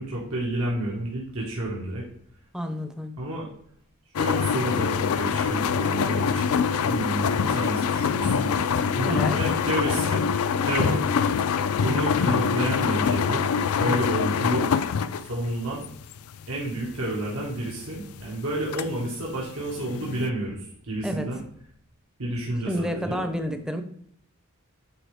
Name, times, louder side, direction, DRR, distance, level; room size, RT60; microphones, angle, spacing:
voice 1, 0.0-2.0 3.2-3.5 4.2-6.5 6.8-8.6 8.9-10.2 10.6-11.0 11.8-14.7 15.3-15.8 16.5-21.4 22.2-23.3, right 1 dB, 85° right, -5 dB, 1.7 m, -30 dB
voice 2, 2.5-3.2 9.0-9.4 21.0-21.3 22.7-23.8, equal, 5° right, 7 dB, 0.6 m, -29 dB
sound 1, 4.1-20.3, left 6 dB, 70° left, 0.4 m, -25 dB
9.2 x 3.9 x 3.5 m, 0.66 s
head